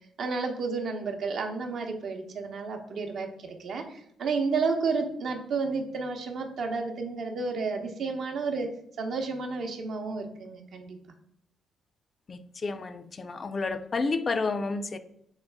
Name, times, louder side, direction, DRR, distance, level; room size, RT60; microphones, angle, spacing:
voice 1, 0.2-8.7 9.0-11.0 13.7-13.8, right 4 dB, 65° right, 3 dB, 0.8 m, -31 dB
voice 2, 12.3-15.0, left 3 dB, 35° left, 9 dB, 0.4 m, -30 dB
4.0 x 3.2 x 3.4 m, 0.73 s
cardioid pair, 90°, 0 cm